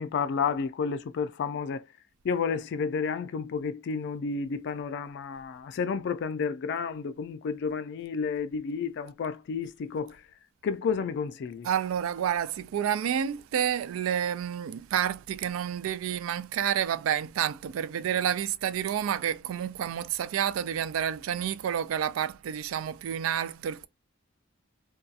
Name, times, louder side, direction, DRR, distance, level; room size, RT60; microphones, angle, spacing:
voice 1, 0.0-1.9 2.2-10.2 10.6-11.7, left 5 dB, 60° left, 0.3 m, -31 dB
voice 2, 11.6-23.9, right 9 dB, 90° right, 0.3 m, -29 dB
2.6 x 2.2 x 2.3 m
head